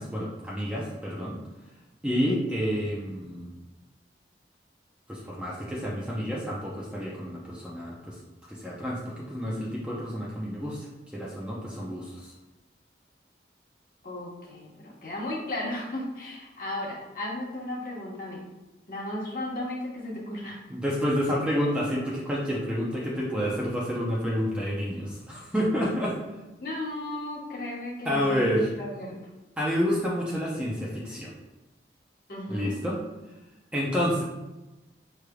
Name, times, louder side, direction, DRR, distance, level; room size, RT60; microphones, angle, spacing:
voice 1, 0.0-1.4 2.0-3.5 5.1-8.2 8.5-10.9 11.1-12.3 20.7-26.2 28.0-28.7 29.6-31.3 32.5-33.0 33.7-34.2, equal, 5° right, -5 dB, 0.6 m, -29 dB
voice 2, 14.0-18.5 18.9-20.6 26.6-29.2 32.3-32.7, left 1 dB, 50° left, -4 dB, 1.2 m, -35 dB
6.2 x 3.2 x 2.3 m, 1.1 s
head